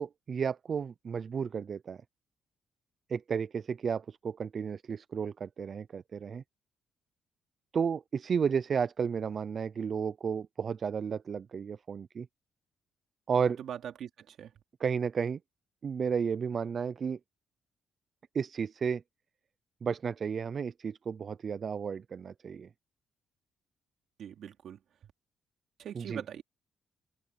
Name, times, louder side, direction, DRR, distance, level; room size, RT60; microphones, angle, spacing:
voice 1, 0.0-2.0 3.1-6.4 7.7-12.3 13.3-13.6 14.8-15.4 15.8-17.2 18.3-19.0 19.8-22.7 25.9-26.2, right 6 dB, 45° right, 0.4 m, -32 dB
voice 2, 13.6-14.5 24.2-24.8 25.8-26.4, right 9 dB, 70° right, 2.7 m, -42 dB
open air
cardioid pair, 90°, 0 cm